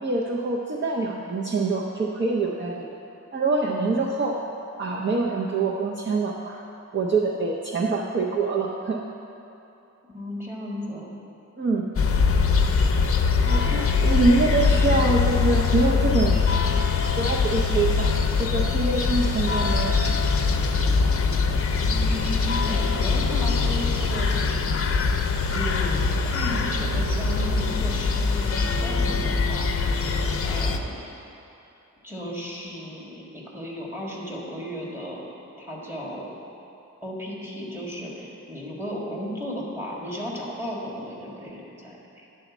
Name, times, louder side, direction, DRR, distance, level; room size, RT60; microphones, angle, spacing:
voice 1, 0.0-2.9 3.3-4.4 4.8-6.6 6.9-9.0 11.6-11.9 13.4-16.4 17.1-18.1 18.4-20.1, right 3 dB, 35° right, -2 dB, 0.6 m, -25 dB
voice 2, 10.1-11.1 21.8-24.3 25.5-29.7 30.4-31.0 32.0-35.2 35.6-36.3 37.0-42.4, equal, 10° right, -4 dB, 1.8 m, -34 dB
sound 1, 12.0-30.8, left 4 dB, 45° left, 0.6 m, -22 dB
10.5 x 4.2 x 7.1 m, 2.9 s
wide cardioid pair, 105°, 31 cm